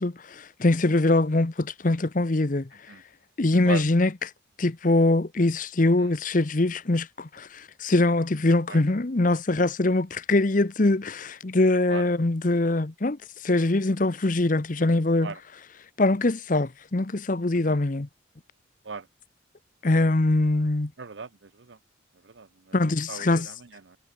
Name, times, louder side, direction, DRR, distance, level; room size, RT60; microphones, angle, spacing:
voice 1, 0.0-2.7 3.4-4.1 4.6-15.3 16.0-18.1 19.8-20.9 22.7-23.5, left 2 dB, 40° left, 0.9 m, -23 dB
voice 2, 21.0-21.8 22.2-22.8 23.1-24.0, right 4 dB, 65° right, 0.8 m, -38 dB
head